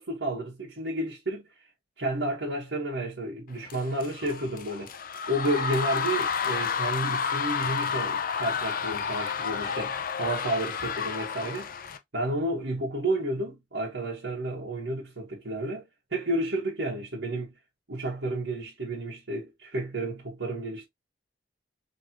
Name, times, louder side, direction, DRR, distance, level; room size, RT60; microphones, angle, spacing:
voice 1, 0.0-1.4 2.0-4.9 5.3-11.7 12.1-17.5 17.9-20.9, right 1 dB, 75° right, 1.5 m, -31 dB
sound 1, 3.7-12.0, left 6 dB, 50° left, 0.6 m, -31 dB
4.3 x 3.2 x 2.9 m
head